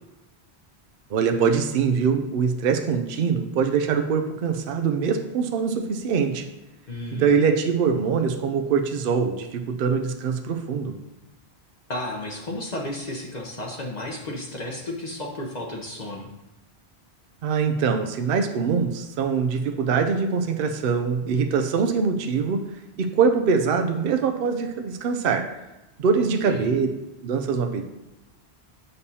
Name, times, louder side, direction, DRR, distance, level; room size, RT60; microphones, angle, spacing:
voice 1, 1.1-6.4 7.2-10.9 17.4-22.6 23.0-25.5 26.0-26.9 27.2-27.8, right 5 dB, 65° right, 6 dB, 0.7 m, -23 dB
voice 2, 6.9-7.3 11.9-16.3 26.4-26.8, left 1 dB, 45° left, 0 dB, 0.9 m, -33 dB
6.9 x 6.7 x 2.8 m, 1.0 s
omnidirectional pair, 1.1 m